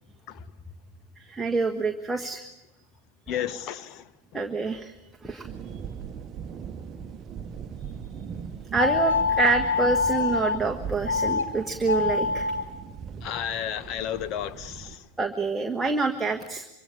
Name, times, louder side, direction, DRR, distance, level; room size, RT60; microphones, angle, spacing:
voice 1, 1.2-2.4 4.3-4.9 5.2-5.5 8.7-12.5 15.2-16.7, right 3 dB, 10° right, 1.5 m, -27 dB
voice 2, 3.3-4.0 13.2-15.0, left 10 dB, 35° left, 1.4 m, -32 dB
sound 1, 5.4-15.0, right 6 dB, 25° right, 1.3 m, -39 dB
sound 2, 8.8-10.6 11.0-11.4 11.8-12.6, left 4 dB, 75° left, 2.5 m, -25 dB
25.5 x 24.5 x 8.6 m
figure-of-eight pair, 90°, 0 cm